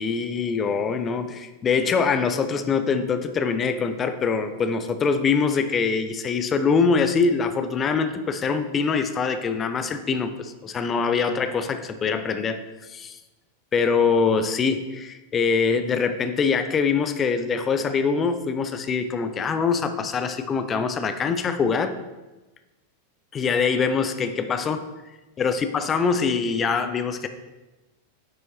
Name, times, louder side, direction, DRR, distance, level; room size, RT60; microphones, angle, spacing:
voice 1, 0.0-13.2 13.7-21.9 23.3-24.9 25.4-27.3, left 5 dB, 25° left, 10 dB, 0.5 m, -24 dB
9.8 x 6.2 x 3.0 m, 1.1 s
figure-of-eight pair, 90°, 0 cm